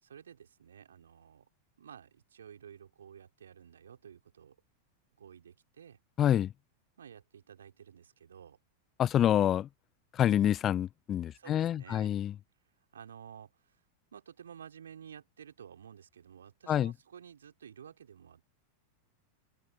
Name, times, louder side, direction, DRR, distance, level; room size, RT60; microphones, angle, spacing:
voice 1, 0.0-1.5 1.8-4.6 5.2-6.0 7.0-8.6 11.3-12.1 12.9-13.7 14.1-18.4, right 8 dB, 65° right, 4.8 m, -52 dB
voice 2, 6.2-6.5 9.0-9.7 10.1-12.3 16.7-16.9, left 11 dB, 30° left, 0.3 m, -27 dB
figure-of-eight pair, 90°, 0 cm